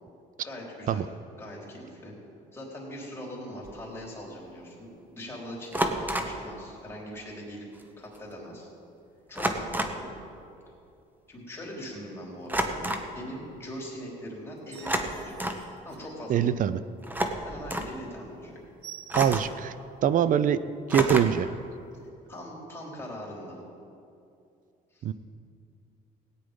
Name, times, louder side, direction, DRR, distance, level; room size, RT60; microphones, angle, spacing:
voice 1, 0.4-1.1 1.4-2.1 2.5-7.7 8.0-8.7 9.3-10.1 11.3-12.8 13.1-15.4 15.8-16.5 17.4-18.6 22.3-23.6 24.9-25.1, equal, 15° left, -4 dB, 3.8 m, -41 dB
sound 1, 3.6-3.8 5.7-6.4 7.8-7.9 8.1-8.4 9.4-10.1 12.5-13.1 14.8-15.7 17.0-18.0 19.1-19.6 20.9-21.5, right 1 dB, 10° right, 1.1 m, -30 dB
sound 2, 14.5-16.7 17.1-17.3 17.6-17.7 18.0-18.2 18.4-19.8 20.2-20.3 20.7-20.8 21.0-21.5 22.3-22.4, right 9 dB, 75° right, 1.2 m, -48 dB
voice 2, 16.3-16.8 19.1-19.7 20.0-21.5 25.0-25.1, right 9 dB, 50° right, 15 dB, 0.5 m, -24 dB
17.0 x 9.4 x 5.2 m, 2.6 s
cardioid pair, 110°, 17 cm